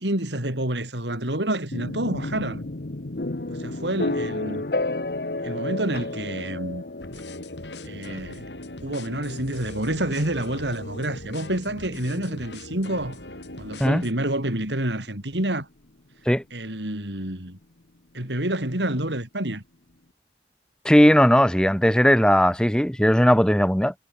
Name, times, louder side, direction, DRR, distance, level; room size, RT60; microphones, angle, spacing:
voice 1, 0.0-2.7 3.5-4.6 5.4-6.8 7.8-8.5 8.8-13.2 13.6-15.7 16.5-17.6 18.1-19.6, right 1 dB, 90° right, 6.0 m, -28 dB
sound 1, 1.7-15.5, left 2 dB, 60° left, 1.2 m, -33 dB
sound 2, 7.0-14.1, left 1 dB, 90° left, 7.8 m, -40 dB
voice 2, 20.8-23.9, equal, 5° left, 1.2 m, -18 dB
head